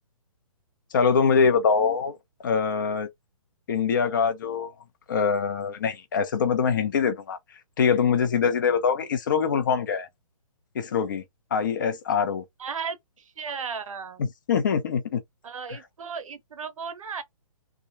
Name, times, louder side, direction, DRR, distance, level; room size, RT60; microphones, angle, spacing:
voice 1, 0.9-2.1 2.4-3.1 3.7-4.7 5.1-7.4 7.8-10.1 10.7-11.2 11.5-12.4 14.2-15.2, left 6 dB, 35° left, 0.5 m, -23 dB
voice 2, 12.6-14.3 15.4-17.2, right 6 dB, 65° right, 0.7 m, -35 dB
2.9 x 2.2 x 2.6 m
hypercardioid pair, 165°, 19 cm